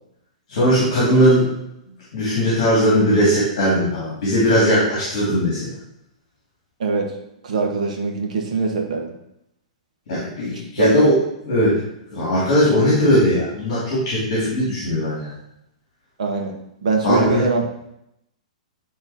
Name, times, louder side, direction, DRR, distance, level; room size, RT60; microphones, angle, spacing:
voice 1, 0.5-1.5 2.1-5.6 10.1-11.1 11.4-11.7 12.1-15.3 17.0-17.4, equal, 40° left, -7 dB, 2.7 m, -18 dB
voice 2, 6.8-7.1 7.4-9.1 10.8-10.9 16.2-16.5 16.8-17.6, right 4 dB, 65° right, 2 dB, 1.4 m, -22 dB
9.4 x 3.3 x 4.3 m, 0.81 s
hypercardioid pair, 180°, 4 cm